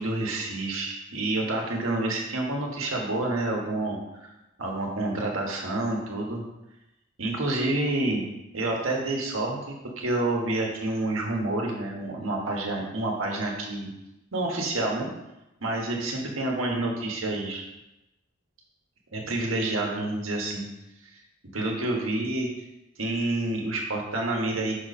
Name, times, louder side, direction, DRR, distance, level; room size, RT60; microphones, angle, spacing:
voice 1, 0.0-4.0 4.6-6.4 7.2-8.3 8.5-13.9 14.3-15.1 15.6-17.6 19.1-20.7 21.1-21.2 21.5-22.5 23.0-24.7, right 2 dB, 90° right, 0 dB, 1.5 m, -28 dB
6.1 x 4.3 x 5.2 m, 0.93 s
head